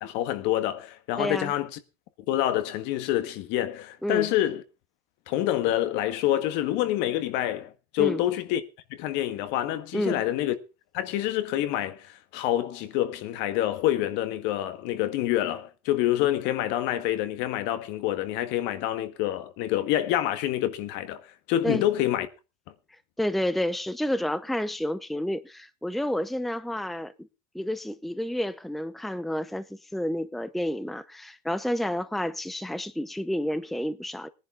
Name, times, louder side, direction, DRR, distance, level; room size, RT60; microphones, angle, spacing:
voice 1, 0.0-1.7 2.3-4.6 5.3-8.6 9.0-10.6 10.9-21.2 21.5-22.3, left 13 dB, 60° left, 1.8 m, -27 dB
voice 2, 1.2-1.5 4.0-4.3 8.0-8.2 9.9-10.2 21.6-21.8 23.2-27.3 27.5-34.3, left 1 dB, ahead, 0.7 m, -30 dB
19.5 x 10.5 x 3.6 m
supercardioid pair, 125°, 20 cm